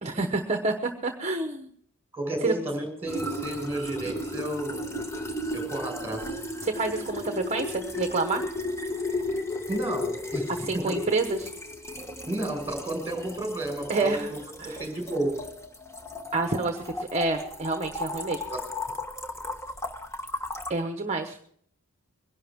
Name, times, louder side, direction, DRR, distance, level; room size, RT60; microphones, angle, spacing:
voice 1, 0.0-1.7 2.4-2.5 6.6-8.4 10.7-11.5 13.9-14.3 14.6-14.8 16.3-18.4 20.7-21.4, right 3 dB, 30° right, 6 dB, 1.0 m, -28 dB
voice 2, 2.1-4.8 5.5-6.4 9.7-11.0 12.3-14.4 14.7-15.4 18.5-18.9, right 1 dB, 10° right, 3 dB, 5.2 m, -32 dB
sound 1, 3.1-20.7, left 1 dB, 15° left, 1.2 m, -35 dB
22.5 x 11.0 x 3.6 m, 0.64 s
head